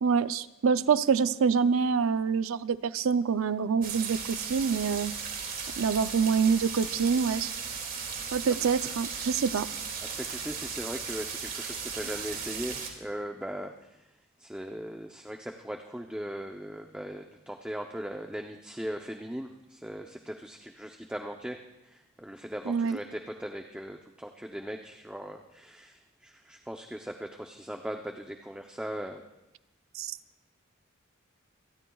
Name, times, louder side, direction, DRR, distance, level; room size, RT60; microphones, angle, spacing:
voice 1, 0.0-5.1 5.8-7.5 8.3-9.7 22.7-23.0 29.9-30.2, right 6 dB, 80° right, 14 dB, 0.5 m, -26 dB
sound 1, 3.8-12.9, right 6 dB, 45° right, 2.4 m, -36 dB
voice 2, 10.1-14.0 14.4-21.6 21.8-29.2, equal, 5° right, 3 dB, 0.6 m, -39 dB
26.5 x 19.0 x 2.3 m, 0.92 s
head